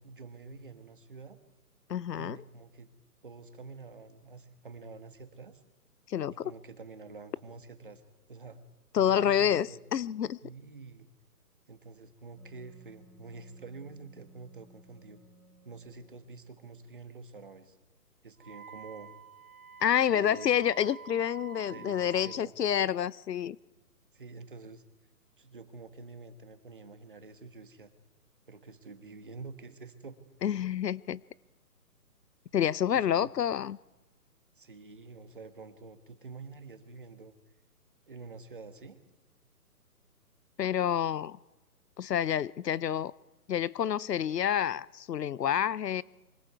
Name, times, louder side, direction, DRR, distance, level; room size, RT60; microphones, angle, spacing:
voice 1, 0.0-1.4 2.1-2.9 3.2-5.6 6.3-8.0 8.3-8.6 8.9-9.8 10.4-11.1 11.7-15.2 15.6-17.8 18.2-19.2 20.1-20.5 21.7-22.5 24.1-24.8 25.4-27.9 28.5-30.5 32.9-33.3 34.6-37.3 38.1-39.0, right 4 dB, 35° right, 9 dB, 1.3 m, -47 dB
voice 2, 1.9-2.4 6.1-6.5 8.9-10.4 19.8-23.6 30.4-31.2 32.5-33.8 40.6-41.4 42.0-43.1 43.5-46.0, left 9 dB, 80° left, 21 dB, 0.7 m, -28 dB
Wind instrument woodwind instrument, 12.4-16.8, right 3 dB, 20° left, 2.6 m, -60 dB
Wind instrument woodwind instrument 2, 18.4-22.4, right 6 dB, 60° right, 0.9 m, -48 dB
24.5 x 24.0 x 4.7 m, 1.1 s
hypercardioid pair, 180°, 48 cm